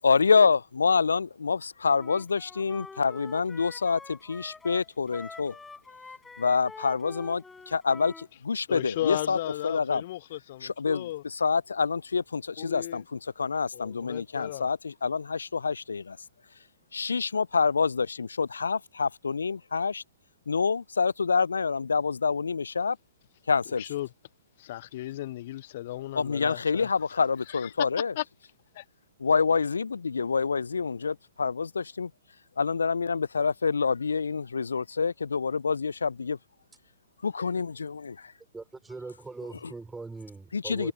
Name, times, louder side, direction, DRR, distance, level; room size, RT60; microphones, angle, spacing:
voice 1, 0.0-5.6 6.4-9.4 9.6-10.0 10.6-16.2 16.9-20.0 20.5-23.0 23.5-23.8 26.2-28.1 29.2-32.1 32.6-36.4 37.2-38.3 40.5-40.9, left 5 dB, 70° left, 0.3 m, -27 dB
Wind instrument woodwind instrument, 1.9-8.3, left 4 dB, 10° left, 6.0 m, -46 dB
voice 2, 8.7-11.2 12.6-13.0 13.7-14.7 23.8-24.1 24.6-26.9 27.5-27.7 28.2-28.3 28.7-28.8, left 15 dB, 45° left, 0.7 m, -35 dB
voice 3, 38.5-40.9, right 3 dB, 5° right, 4.2 m, -41 dB
figure-of-eight pair, 120°, 0 cm